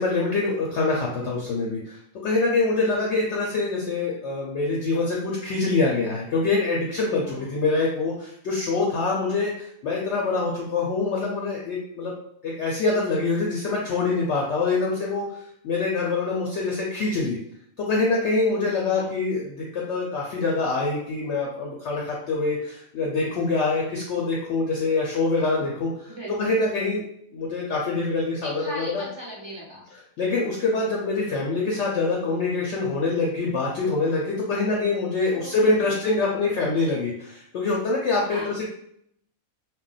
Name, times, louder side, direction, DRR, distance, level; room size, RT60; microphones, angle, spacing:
voice 1, 0.0-12.1 12.4-15.3 15.6-17.4 17.8-27.0 27.3-29.0 30.2-38.6, left 3 dB, 65° left, -2 dB, 0.7 m, -25 dB
voice 2, 25.6-26.6 28.4-29.8 35.3-36.0 38.2-38.6, equal, 40° right, -6 dB, 0.3 m, -39 dB
2.3 x 2.1 x 3.8 m, 0.71 s
omnidirectional pair, 1.5 m